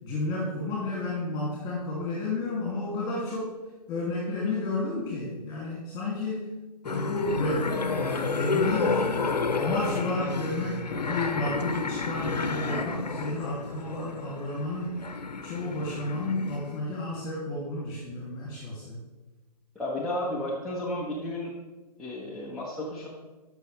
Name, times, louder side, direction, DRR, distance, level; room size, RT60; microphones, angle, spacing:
voice 1, 0.0-3.5 3.9-6.5 6.8-9.0 9.5-15.0 15.4-19.0, left 2 dB, 20° left, -5 dB, 2.5 m, -31 dB
sound 1, 6.8-16.8, left 4 dB, 90° left, 0.9 m, -31 dB
voice 2, 19.7-21.5 22.0-23.1, left 1 dB, ahead, -7 dB, 1.3 m, -32 dB
13.5 x 6.2 x 3.3 m, 1.2 s
hypercardioid pair, 140°, 20 cm